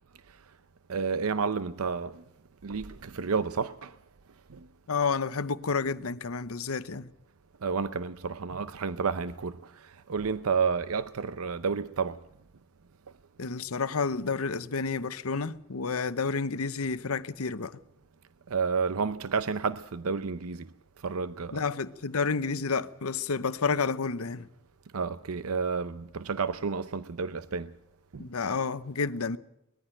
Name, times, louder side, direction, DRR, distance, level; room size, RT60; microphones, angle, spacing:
voice 1, 0.9-2.2 2.6-3.9 4.5-4.7 7.6-12.2 18.5-20.7 21.0-21.6 24.9-27.7 28.1-28.3, right 5 dB, 85° right, 0.6 m, -30 dB
voice 2, 4.9-7.1 13.4-17.8 21.5-24.5 28.2-29.4, left 4 dB, 85° left, 0.9 m, -30 dB
20.5 x 14.5 x 9.0 m
head